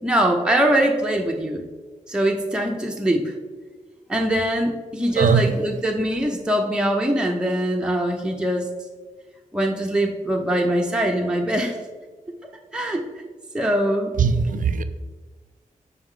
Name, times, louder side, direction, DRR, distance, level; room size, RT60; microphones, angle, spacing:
voice 1, 0.0-1.6 2.1-3.2 4.1-8.7 9.5-11.7 12.7-13.0 13.5-14.1, right 1 dB, 5° right, 1 dB, 0.7 m, -22 dB
voice 2, 5.2-5.5 14.2-14.8, right 5 dB, 65° right, 11 dB, 0.4 m, -19 dB
5.5 x 4.6 x 3.7 m, 1.4 s
cardioid pair, 65°, 15 cm